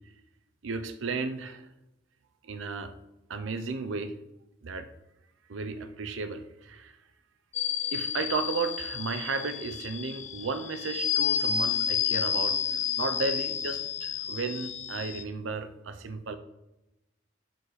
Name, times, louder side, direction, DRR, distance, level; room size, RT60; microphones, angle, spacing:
voice 1, 0.6-1.7 2.4-2.9 3.3-4.1 4.6-4.9 5.5-7.0 7.9-16.3, right 4 dB, 75° right, 9 dB, 0.5 m, -34 dB
sound 1, 7.5-15.2, left 8 dB, 35° left, 0.5 m, -30 dB
7.5 x 4.0 x 4.7 m, 0.95 s
head